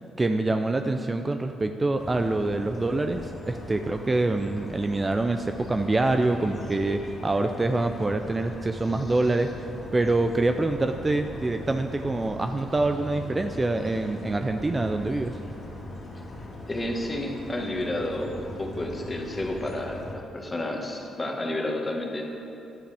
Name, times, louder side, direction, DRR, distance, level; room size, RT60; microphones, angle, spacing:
voice 1, 0.2-15.4, right 2 dB, 20° right, 6 dB, 0.4 m, -26 dB
sound 1, 2.0-20.1, left 1 dB, 40° left, 2.2 m, -40 dB
voice 2, 16.7-22.2, left 1 dB, 20° left, 1 dB, 1.5 m, -31 dB
13.5 x 10.5 x 3.5 m, 2.9 s
cardioid pair, 90°, 0 cm